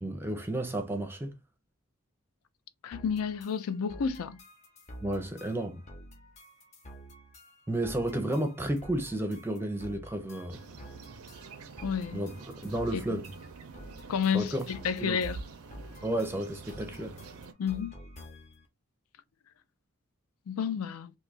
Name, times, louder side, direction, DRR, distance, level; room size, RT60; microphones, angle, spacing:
voice 1, 0.0-1.3 5.0-5.8 7.7-10.6 12.1-12.3 12.6-13.3 14.3-14.7 15.0-15.2 16.0-17.2, right 1 dB, 10° right, 0.5 m, -32 dB
voice 2, 2.8-4.4 11.8-12.3 12.9-13.2 14.1-15.4 17.6-18.0 20.5-21.1, left 7 dB, 75° left, 0.4 m, -31 dB
sound 1, 2.9-18.7, equal, 30° left, 0.7 m, -50 dB
sound 2, 10.5-17.5, right 4 dB, 85° right, 0.5 m, -47 dB
2.6 x 2.4 x 3.9 m
head